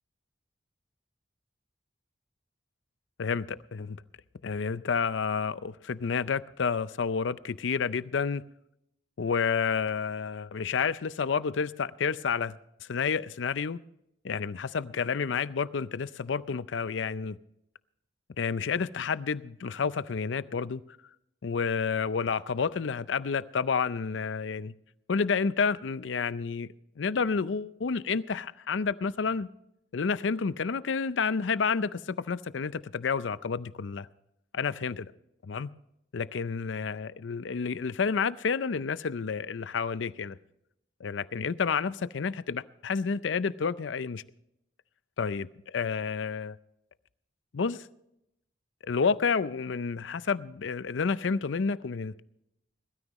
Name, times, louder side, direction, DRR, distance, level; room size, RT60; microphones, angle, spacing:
voice 1, 3.2-4.0 4.4-8.4 9.2-12.6 12.9-13.8 14.2-17.4 18.4-20.8 21.4-24.7 25.1-26.7 27.0-29.5 29.9-34.1 34.5-35.1 35.5-35.7 36.1-40.4 41.0-44.2 45.2-45.5 45.7-46.6 47.5-47.8 48.8-52.2, left 5 dB, 85° left, 17 dB, 0.5 m, -30 dB
21.0 x 13.0 x 3.1 m, 0.81 s
head